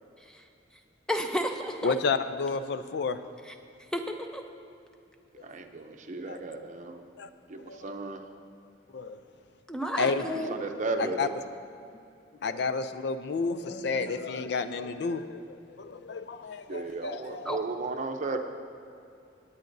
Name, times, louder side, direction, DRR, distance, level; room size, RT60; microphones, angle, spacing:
voice 1, 1.1-1.9 3.9-4.4 9.7-10.6 17.5-17.6, equal, 5° left, 4 dB, 0.6 m, -31 dB
voice 2, 1.8-3.2 6.3-6.4 7.2-7.3 7.7-7.9 8.9-9.2 10.0-10.4 11.0-11.3 12.4-17.5, left 4 dB, 60° left, 11 dB, 0.4 m, -31 dB
voice 3, 5.4-7.1 7.5-8.2 10.3-11.3 16.7-18.4, right 3 dB, 40° right, 5 dB, 0.6 m, -34 dB
19.0 x 9.0 x 2.6 m, 2.6 s
head